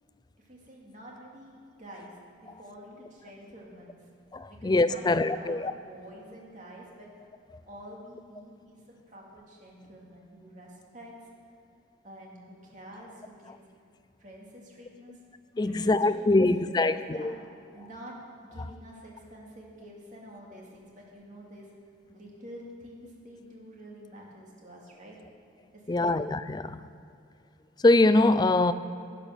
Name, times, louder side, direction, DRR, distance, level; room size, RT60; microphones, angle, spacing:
voice 1, 0.4-2.1 2.4-4.0 4.5-7.1 7.6-8.8 9.1-11.1 12.0-13.7 14.2-15.2 15.6-17.3 17.7-18.2 18.5-21.7 22.1-25.2 25.7-26.2, equal, 40° right, 2.5 m, -48 dB
voice 2, 4.3-5.7 15.6-17.3 25.9-26.8 27.8-28.7, left 2 dB, 20° left, 0.3 m, -23 dB
11.5 x 8.9 x 6.6 m
head